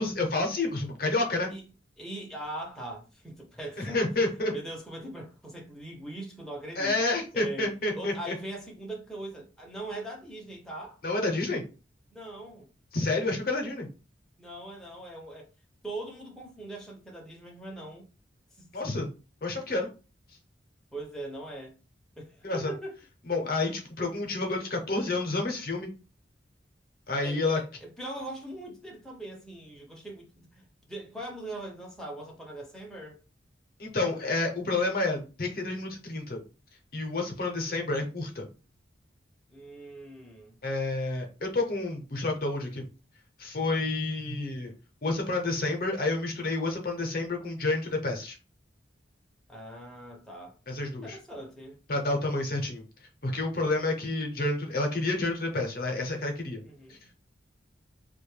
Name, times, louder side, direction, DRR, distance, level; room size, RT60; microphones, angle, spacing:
voice 1, 0.0-1.5 3.8-4.5 6.8-8.4 11.0-11.6 12.9-13.9 18.7-19.1 19.4-19.9 22.4-22.7 23.3-25.9 27.1-27.6 33.8-36.4 36.9-38.5 40.6-42.8 43.4-44.7 45.0-48.4 50.7-51.2 51.9-52.8 53.2-56.6 56.9-57.1, left 2 dB, 50° left, 0.6 m, -29 dB
voice 2, 2.0-4.0 4.5-7.0 7.3-11.0 12.1-12.7 14.4-15.5 15.8-18.1 18.6-18.7 20.9-21.7 22.2-23.0 27.2-33.2 39.5-40.6 49.5-51.8 56.6-57.1, right 1 dB, 5° left, 0.5 m, -41 dB
2.6 x 2.2 x 3.1 m
head